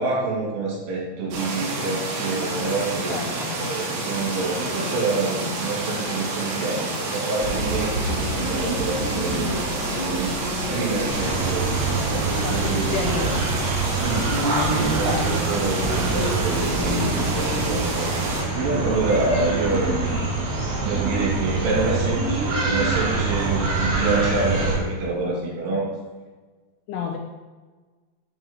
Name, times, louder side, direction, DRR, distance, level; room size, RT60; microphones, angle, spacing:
voice 1, 0.0-13.3 14.0-18.1 18.5-20.1 20.8-25.9, right 3 dB, 90° right, -4 dB, 5.2 m, -27 dB
sound 1, 1.3-18.4, right 2 dB, 70° right, 4.0 m, -29 dB
voice 2, 3.1-3.6 12.4-13.5 26.9-27.2, left 6 dB, 80° left, 1 dB, 2.4 m, -30 dB
sound 2, 7.4-17.6, right 1 dB, 40° left, 1.7 m, -31 dB
sound 3, 11.1-24.8, right 3 dB, 55° right, 4.5 m, -25 dB
10.5 x 3.7 x 7.1 m, 1.3 s
omnidirectional pair, 5.4 m